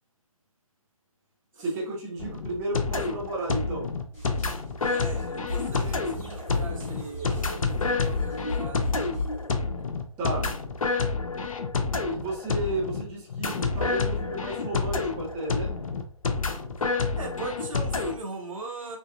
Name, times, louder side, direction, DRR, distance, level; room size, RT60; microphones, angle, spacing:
voice 1, 1.6-3.9 10.2-10.6 12.1-15.7, right 1 dB, 15° right, 0.6 m, -32 dB
sound 1, 2.2-18.2, left 4 dB, 65° left, 0.5 m, -29 dB
sound 2, 4.1-9.5, left 2 dB, 10° left, 1.4 m, -35 dB
voice 2, 4.9-7.3 7.7-8.8 17.2-19.0, right 3 dB, 65° right, 1.0 m, -39 dB
3.6 x 2.2 x 2.3 m
figure-of-eight pair, 140°, 19 cm